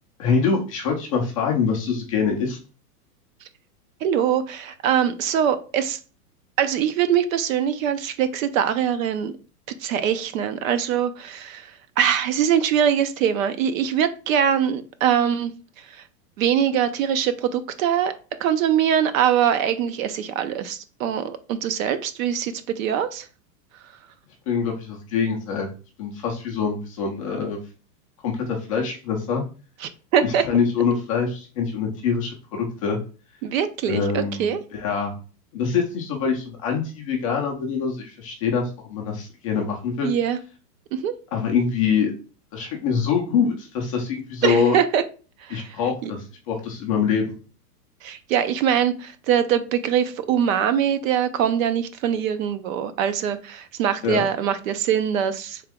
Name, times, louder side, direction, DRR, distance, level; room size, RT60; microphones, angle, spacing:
voice 1, 0.2-2.6 24.5-25.7 26.0-27.6 28.2-29.4 30.2-33.0 33.9-35.1 35.5-40.1 41.3-42.1 42.5-44.8 45.5-47.3 54.0-54.2, left 6 dB, 25° left, 0 dB, 0.3 m, -24 dB
voice 2, 4.0-6.0 6.6-9.3 9.8-16.0 16.4-23.3 29.8-30.5 33.4-34.6 40.0-40.4 40.9-41.1 44.4-45.0 45.4-46.1 48.0-55.6, right 9 dB, 60° right, 11 dB, 0.6 m, -23 dB
3.6 x 2.9 x 3.4 m, 0.37 s
hypercardioid pair, 135°, 47 cm